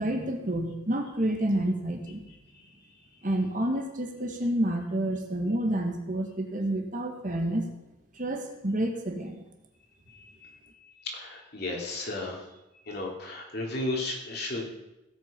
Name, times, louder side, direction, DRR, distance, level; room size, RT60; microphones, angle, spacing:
voice 1, 0.0-2.2 3.2-7.7 8.1-9.4, right 1 dB, 40° right, 3 dB, 1.7 m, -29 dB
voice 2, 10.1-10.5 11.0-12.4 12.8-14.7, left 2 dB, 55° left, -1 dB, 3.1 m, -34 dB
17.0 x 8.3 x 5.3 m, 0.95 s
head